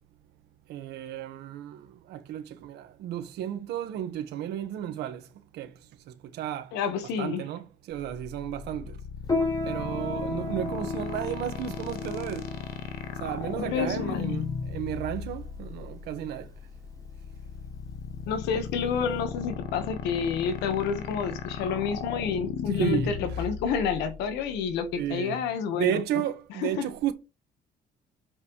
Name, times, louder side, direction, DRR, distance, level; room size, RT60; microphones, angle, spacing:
voice 1, 0.7-6.7 7.2-9.0 9.6-12.6 13.1-16.5 22.7-23.4 25.0-25.4 25.7-27.1, right 10 dB, 80° right, 1.5 m, -33 dB
voice 2, 6.7-7.5 13.6-14.2 18.3-26.0 26.6-26.9, left 6 dB, 90° left, 1.5 m, -29 dB
sound 1, 7.9-25.1, left 7 dB, 65° left, 1.3 m, -36 dB
Piano, 9.3-19.2, left 2 dB, 25° left, 4.0 m, -35 dB
7.6 x 5.7 x 3.2 m
cardioid pair, 110°, 17 cm